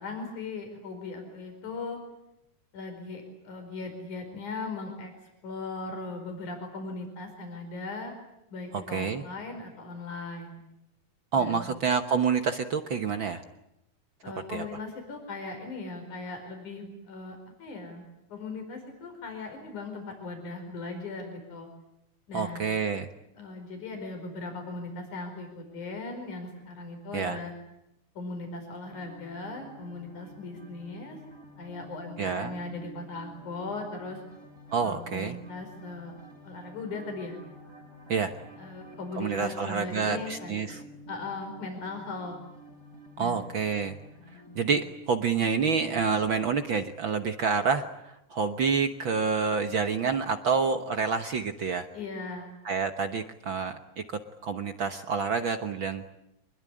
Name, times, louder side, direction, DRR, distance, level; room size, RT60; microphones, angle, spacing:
voice 1, 0.0-2.0 2.7-8.1 8.5-10.6 11.4-11.7 14.2-18.0 18.3-21.7 22.3-22.6 23.4-27.5 28.2-31.2 31.6-34.2 34.8-36.1 36.4-37.4 38.6-40.7 41.1-42.4 43.2-43.5 51.9-52.6, left 3 dB, 75° left, 5 dB, 6.3 m, -38 dB
voice 2, 8.9-9.2 11.3-13.4 14.5-14.6 22.3-23.1 27.1-27.4 32.2-32.5 34.7-35.4 38.1-38.3 39.2-40.8 43.2-44.0 44.5-51.9 52.6-54.0 54.4-56.1, right 5 dB, 55° right, 8 dB, 1.5 m, -28 dB
sound 1, 28.8-44.9, equal, 10° left, 3.4 m, -50 dB
25.5 x 21.5 x 9.9 m, 0.84 s
omnidirectional pair, 3.5 m